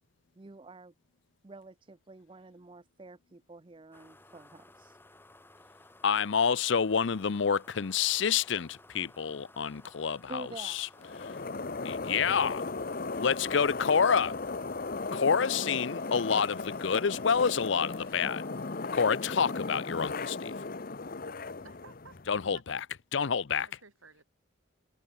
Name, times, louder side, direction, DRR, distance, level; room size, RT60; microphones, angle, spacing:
voice 1, 0.4-0.9 1.4-5.0 10.3-10.9, right 3 dB, 25° right, 0.5 m, -48 dB
sound 1, 3.9-18.8, left 2 dB, 10° left, 2.0 m, -57 dB
voice 2, 6.0-10.9 11.2-11.3 11.8-12.6 13.2-14.3 15.1-18.4 18.9-20.5 22.3-22.8 23.1-23.7, left 6 dB, 65° left, 0.6 m, -28 dB
sound 2, 11.0-22.5, left 3 dB, 45° left, 0.8 m, -36 dB
voice 3, 21.6-22.6 23.6-24.3, right 4 dB, 90° right, 7.8 m, -54 dB
head